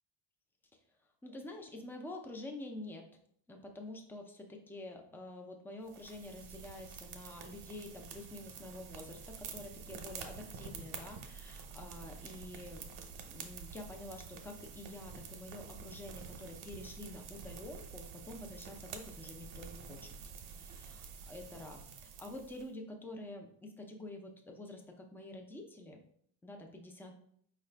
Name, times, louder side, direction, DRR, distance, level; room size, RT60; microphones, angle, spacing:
voice 1, 1.2-3.1 3.5-12.9 13.2-20.1 20.4-26.0 26.4-27.2, left 1 dB, 5° left, 2 dB, 0.5 m, -48 dB
sound 1, 5.9-22.7, right 6 dB, 70° right, 0.8 m, -48 dB
4.6 x 2.4 x 3.3 m, 0.65 s
cardioid pair, 105°, 40 cm